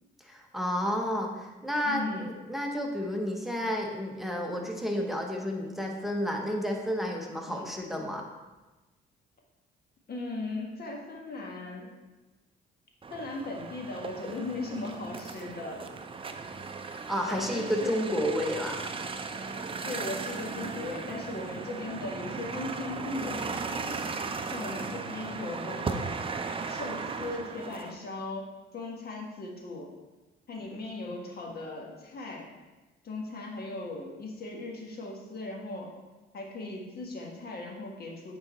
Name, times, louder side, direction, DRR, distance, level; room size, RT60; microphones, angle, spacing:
voice 1, 0.2-8.3 16.8-18.9, equal, ahead, 0 dB, 1.0 m, -31 dB
voice 2, 1.8-2.3 7.5-7.7 10.1-11.9 13.1-15.8 17.3-18.0 19.8-24.1 24.5-26.2 26.7-29.9 30.5-32.5 33.0-35.9 36.3-38.4, left 2 dB, 50° left, -1 dB, 1.6 m, -38 dB
sound 1, 13.0-27.9, right 4 dB, 25° right, 0.5 m, -37 dB
8.7 x 3.9 x 4.2 m, 1.1 s
cardioid pair, 90°, 20 cm